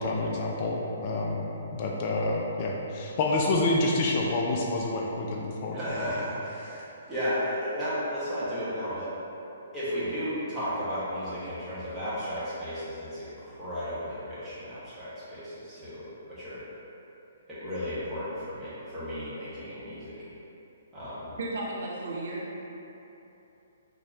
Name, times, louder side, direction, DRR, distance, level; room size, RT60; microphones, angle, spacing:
voice 1, 0.0-6.0, left 2 dB, 40° left, -1 dB, 0.3 m, -28 dB
voice 2, 5.7-9.1 9.7-16.6 17.5-20.1 20.9-21.3, equal, 10° right, -13 dB, 1.4 m, -34 dB
voice 3, 21.4-22.5, right 2 dB, 60° right, -4 dB, 0.6 m, -34 dB
4.0 x 3.0 x 2.8 m, 3.0 s
figure-of-eight pair, 125°, 0 cm